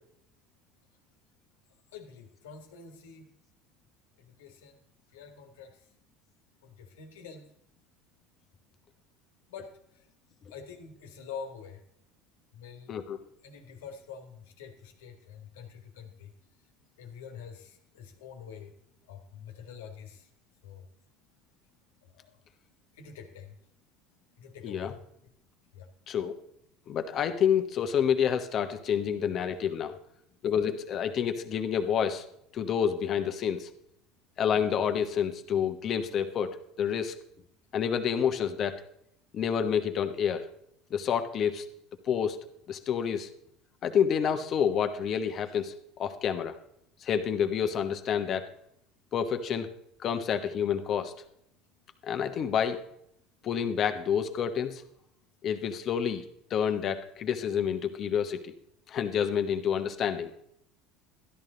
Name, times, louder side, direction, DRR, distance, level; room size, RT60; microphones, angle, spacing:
voice 1, 1.9-3.3 4.2-4.8 5.1-5.8 6.6-7.5 9.5-10.1 10.5-11.8 12.5-13.0 13.4-16.7 17.0-18.7 19.1-20.3 20.6-20.9 22.0-22.4 22.9-23.6 24.4-25.3 25.7-25.9, left 6 dB, 90° left, 5 dB, 1.8 m, -46 dB
voice 2, 26.1-26.4 26.9-29.9 30.4-32.2 32.5-33.7 34.4-37.1 37.7-38.8 39.3-40.5 40.9-41.7 42.1-42.4 42.7-43.3 43.8-45.7 46.0-46.6 47.0-48.5 49.1-49.7 50.0-51.1 52.0-52.8 53.4-54.8 55.4-56.2 56.5-58.5 58.9-60.3, left 8 dB, 45° left, 7 dB, 1.2 m, -28 dB
12.5 x 11.0 x 3.9 m, 0.72 s
supercardioid pair, 95°, 0 cm